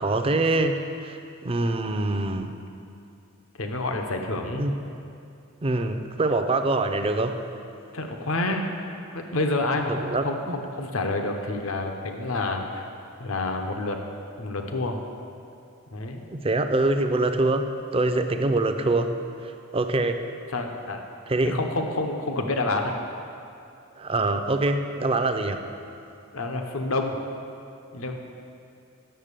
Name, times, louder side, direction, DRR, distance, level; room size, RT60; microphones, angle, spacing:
voice 1, 0.0-2.5 4.5-4.8 5.6-7.4 9.9-10.5 16.3-20.2 21.3-21.6 24.0-25.6, right 2 dB, 25° right, 7 dB, 0.5 m, -25 dB
voice 2, 3.6-4.7 7.9-8.6 9.1-12.8 13.2-14.0 14.4-15.0 15.9-16.2 20.5-21.0 21.4-23.0 26.3-27.1 27.9-28.1, left 2 dB, 75° left, 4 dB, 0.8 m, -28 dB
9.0 x 6.7 x 6.7 m, 2.6 s
head